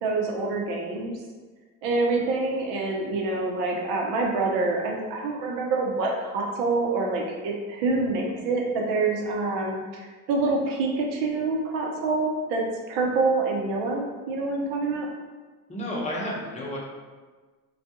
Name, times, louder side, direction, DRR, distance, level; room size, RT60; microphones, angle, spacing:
voice 1, 0.0-1.1 1.8-10.0 10.3-15.1, right 3 dB, 75° right, -1 dB, 0.7 m, -26 dB
voice 2, 15.7-16.8, equal, 15° left, -5 dB, 0.8 m, -31 dB
2.3 x 2.2 x 2.8 m, 1.4 s
supercardioid pair, 85°, 44 cm